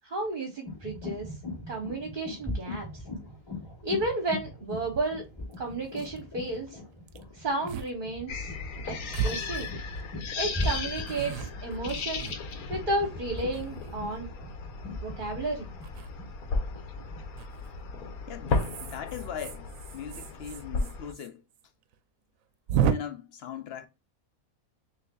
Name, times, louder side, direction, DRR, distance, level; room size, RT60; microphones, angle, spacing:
voice 1, 0.0-1.3 1.7-3.0 3.8-5.2 5.6-6.8 7.3-8.5 8.8-9.7 10.4-12.3 12.7-14.3 15.0-15.7, right 2 dB, 40° right, 1.0 m, -32 dB
sound 1, 0.6-17.4, left 1 dB, 15° left, 2.3 m, -39 dB
sound 2, 4.9-5.0 5.5-5.6 5.8-6.2 7.1-7.2 7.7-7.9 8.2-8.3 9.1-10.1 10.6-12.8 13.4-14.2 15.8-16.1 17.4-17.7 18.5-21.3 21.5-21.6 21.9-22.0 22.7-22.9, right 7 dB, 75° right, 0.9 m, -33 dB
sound 3, 8.3-21.1, left 4 dB, 85° left, 1.3 m, -35 dB
voice 2, 18.3-21.4 22.8-23.9, left 8 dB, 55° left, 0.8 m, -40 dB
6.3 x 2.8 x 2.3 m
omnidirectional pair, 1.5 m